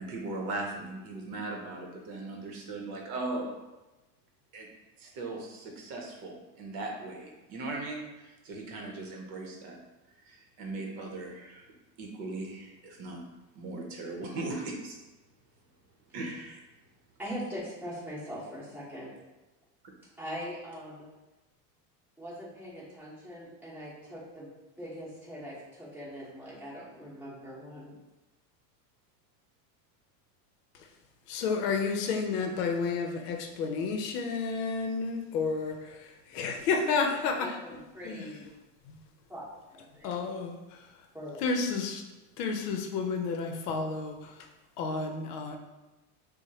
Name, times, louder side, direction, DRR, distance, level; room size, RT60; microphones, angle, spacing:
voice 1, 0.0-3.6 4.5-4.7 5.0-9.8 10.2-11.7 12.0-13.2 13.5-14.9 16.1-16.6, right 2 dB, 45° right, 0 dB, 0.9 m, -38 dB
voice 2, 17.2-19.1 20.2-21.1 22.2-24.5 24.8-27.9 37.4-38.5 39.3-40.1 41.1-41.4, equal, 5° right, -9 dB, 1.4 m, -41 dB
voice 3, 31.3-37.6 38.0-38.3 38.9-39.0 40.0-40.9 41.4-42.0 42.4-44.5 44.8-45.6, left 4 dB, 75° left, 4 dB, 0.7 m, -31 dB
6.0 x 2.2 x 2.9 m, 1.1 s
supercardioid pair, 135°, 48 cm